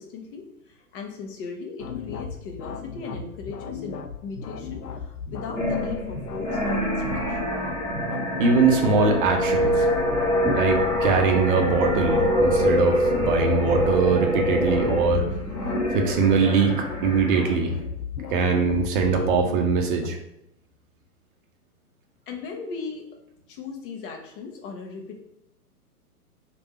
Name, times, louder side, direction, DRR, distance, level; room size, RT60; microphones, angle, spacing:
voice 1, 0.0-7.6 22.3-23.1 23.5-25.2, left 4 dB, 35° left, 2 dB, 0.8 m, -37 dB
sound 1, 1.8-20.1, left 6 dB, 85° left, 0.6 m, -36 dB
sound 2, 5.6-17.8, equal, 5° left, 0.5 m, -25 dB
voice 2, 8.4-9.9 10.5-15.3 15.9-17.7 18.3-20.2, right 4 dB, 35° right, 3 dB, 0.7 m, -22 dB
3.3 x 2.6 x 4.1 m, 0.82 s
figure-of-eight pair, 115°, 46 cm